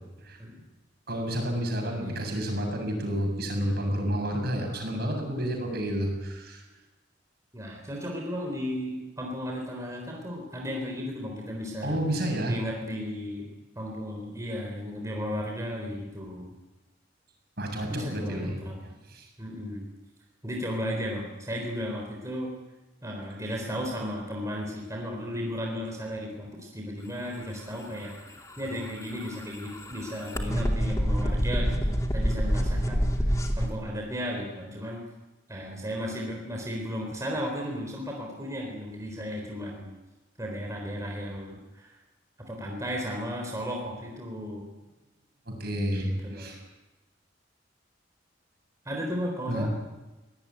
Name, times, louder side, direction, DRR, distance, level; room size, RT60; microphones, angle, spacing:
voice 1, 1.1-6.6 11.8-12.6 17.6-18.5 19.1-19.3 45.5-46.6 49.5-49.7, equal, 55° right, 3 dB, 7.5 m, -30 dB
voice 2, 7.5-13.5 13.8-16.5 17.9-18.9 19.4-19.9 20.4-22.5 23.0-35.0 35.5-39.9 40.4-41.9 42.4-44.7 46.0-46.5 48.9-49.7, equal, 15° right, 0 dB, 3.9 m, -35 dB
sound 1, 28.5-33.7, equal, 20° left, 2.6 m, -27 dB
23.5 x 18.5 x 9.6 m, 1.1 s
head